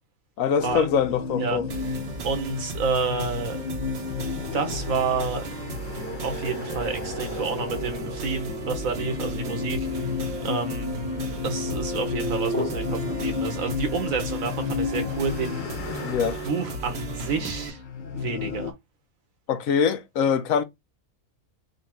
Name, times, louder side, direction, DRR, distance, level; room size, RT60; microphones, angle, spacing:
voice 1, 0.4-1.6 16.0-16.4 19.5-20.6, left 7 dB, 75° left, 1.0 m, -23 dB
sound 1, 0.6-18.7, left 5 dB, 55° left, 0.6 m, -33 dB
sound 2, 1.7-17.7, right 3 dB, 55° right, 1.0 m, -36 dB
voice 2, 2.2-3.6 4.5-5.5 6.2-10.9 11.4-15.6 16.4-17.8 18.1-18.7, right 4 dB, 70° right, 1.4 m, -29 dB
sound 3, 8.4-14.1, equal, 10° left, 0.9 m, -36 dB
4.0 x 2.5 x 4.4 m
omnidirectional pair, 1.5 m